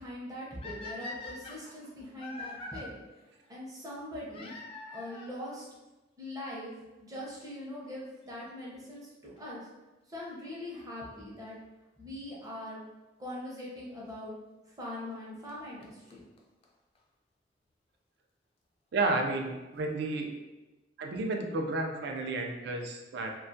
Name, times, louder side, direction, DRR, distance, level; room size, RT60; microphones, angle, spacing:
voice 1, 0.0-2.9 3.5-4.5 4.9-5.7 6.2-6.7 7.0-9.6 10.1-11.6 12.0-12.8 13.2-14.3 14.8-16.2, left 1 dB, 20° right, -5 dB, 0.6 m, -42 dB
sound 1, 0.6-2.8 4.3-5.4 6.3-6.4 7.1-7.2 7.4-7.5 9.4-9.6 12.4-12.5 13.6-13.7 15.1-15.2 15.5-15.6 15.8-15.9 16.1-16.2 16.4-16.5 16.6-16.7 17.0-17.1, left 2 dB, 30° left, 0.3 m, -43 dB
voice 2, 18.9-20.3 21.0-23.3, right 2 dB, 65° right, 3 dB, 0.4 m, -31 dB
2.2 x 2.1 x 2.6 m, 1.1 s
head